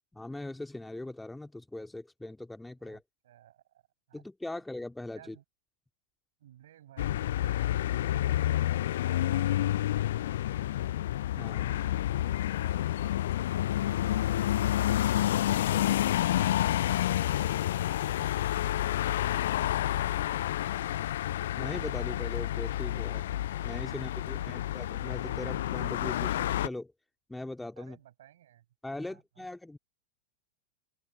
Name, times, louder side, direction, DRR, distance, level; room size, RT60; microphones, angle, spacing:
voice 1, 0.1-3.0 4.1-5.4 11.4-11.7 21.6-23.3 23.6-26.9 27.3-28.0 28.8-29.8, left 2 dB, 5° left, 2.4 m, -40 dB
voice 2, 2.8-3.8 4.1-4.2 4.5-4.6 5.1-5.4 6.4-10.9 11.6-13.2 13.6-16.9 17.4-20.9 23.9-24.7 27.8-28.7 29.0-29.5, right 12 dB, 60° right, 6.8 m, -58 dB
sound 1, 7.0-26.7, left 13 dB, 60° left, 0.4 m, -29 dB
open air
figure-of-eight pair, 90°, 0 cm